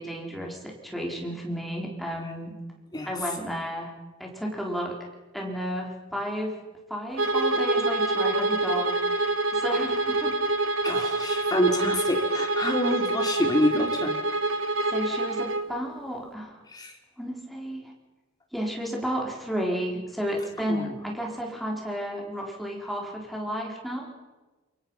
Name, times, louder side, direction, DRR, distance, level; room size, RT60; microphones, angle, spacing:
voice 1, 0.0-2.5 3.1-3.9 4.2-4.9 5.3-6.5 6.9-10.3 14.9-16.6 17.2-17.9 18.5-24.1, equal, ahead, -1 dB, 4.4 m, -32 dB
Bowed string instrument, 7.1-15.7, right 2 dB, 85° right, 1.7 m, -26 dB
voice 2, 10.8-14.2 16.7-16.9 20.7-20.9, left 1 dB, 20° left, 2 dB, 3.3 m, -27 dB
29.5 x 23.0 x 5.7 m, 1.2 s
head